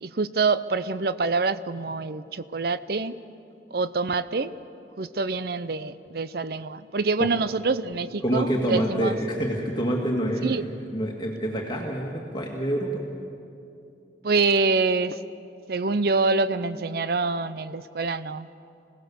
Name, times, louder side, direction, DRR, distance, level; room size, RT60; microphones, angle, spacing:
voice 1, 0.0-3.1 3.7-4.5 5.0-9.2 10.4-10.6 14.2-15.2 15.7-18.5, right 3 dB, 55° right, 14 dB, 0.6 m, -26 dB
voice 2, 8.2-13.0, right 1 dB, 25° left, -1 dB, 1.8 m, -27 dB
26.0 x 17.5 x 7.0 m, 2.6 s
head